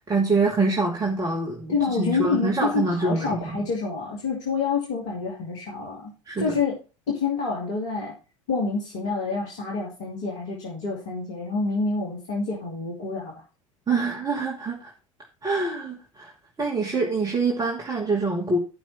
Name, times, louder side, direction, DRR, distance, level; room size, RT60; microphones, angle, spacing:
voice 1, 0.1-3.6 6.3-6.5 13.9-14.9 15.4-16.3 16.6-18.6, right 3 dB, 20° right, -1 dB, 2.5 m, -25 dB
voice 2, 1.7-6.8 7.1-8.1 8.5-13.4, left 4 dB, 65° left, -2 dB, 2.9 m, -27 dB
13.5 x 6.0 x 4.4 m, 0.33 s
figure-of-eight pair, 70°, 17 cm